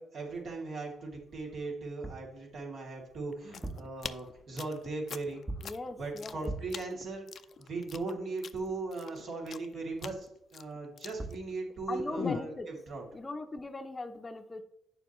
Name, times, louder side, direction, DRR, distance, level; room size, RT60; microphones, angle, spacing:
voice 1, 0.0-5.4 6.0-7.3 7.6-12.5 12.9-13.0, right 3 dB, 60° right, -1 dB, 2.8 m, -38 dB
sound 1, 2.0-2.4 3.5-4.0 5.5-5.8 6.5-6.9 10.9-11.0 11.2-11.5, right 2 dB, 20° right, 0.9 m, -40 dB
sound 2, 3.3-11.8 12.2-12.5, left 6 dB, 55° left, 0.5 m, -42 dB
voice 2, 5.6-6.5 11.9-12.7 13.1-14.6, left 2 dB, 20° left, 7 dB, 0.7 m, -39 dB
9.2 x 6.9 x 3.1 m, 0.78 s
cardioid pair, 90°, 0 cm